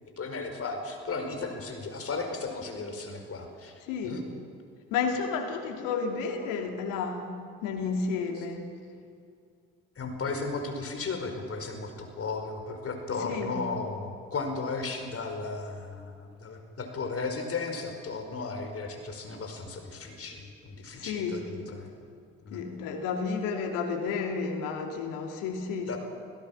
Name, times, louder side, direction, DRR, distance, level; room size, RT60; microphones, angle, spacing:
voice 1, 0.2-4.2 9.9-21.9 22.4-22.6 25.9-26.0, left 4 dB, 40° left, 4 dB, 5.0 m, -35 dB
voice 2, 3.8-4.2 4.9-7.3 7.6-8.7 13.2-13.6 21.0-21.4 22.5-26.0, left 5 dB, 70° left, 3 dB, 3.0 m, -31 dB
26.5 x 16.0 x 7.3 m, 2.2 s
hypercardioid pair, 50°, 34 cm